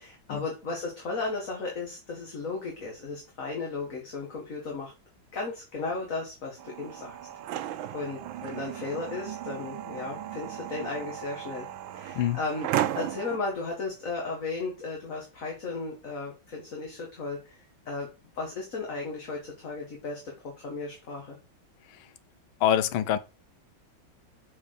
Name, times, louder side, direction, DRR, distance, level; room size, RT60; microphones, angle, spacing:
voice 1, 0.0-4.9 5.3-7.2 7.4-11.7 11.9-12.7 13.0-17.6 17.9-18.1 18.3-21.4, left 3 dB, 45° left, 2.1 m, -35 dB
sound 1, 6.6-13.4, right 12 dB, 80° right, 1.4 m, -35 dB
voice 2, 22.6-23.2, left 10 dB, 85° left, 1.5 m, -24 dB
7.0 x 4.7 x 6.7 m
omnidirectional pair, 2.2 m